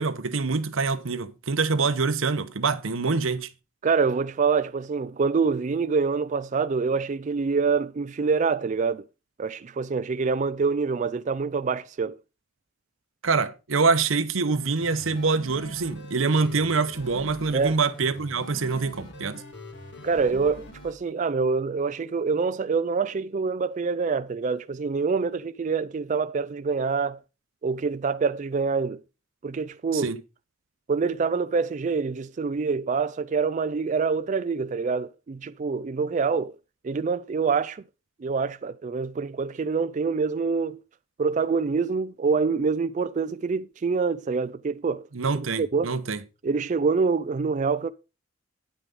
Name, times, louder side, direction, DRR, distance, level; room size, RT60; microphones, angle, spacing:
voice 1, 0.0-3.5 13.2-19.4 29.9-30.2 45.1-46.2, right 4 dB, 85° right, 0.9 m, -25 dB
voice 2, 3.8-9.1 9.4-12.2 17.5-17.8 20.0-27.2 27.6-29.0 29.4-30.2 30.9-36.5 36.8-37.8 38.2-40.8 41.2-45.1 45.6-45.9 46.4-47.9, right 5 dB, 40° right, 0.4 m, -26 dB
sound 1, 14.6-20.9, equal, 60° left, 2.5 m, -43 dB
9.7 x 5.8 x 5.2 m
head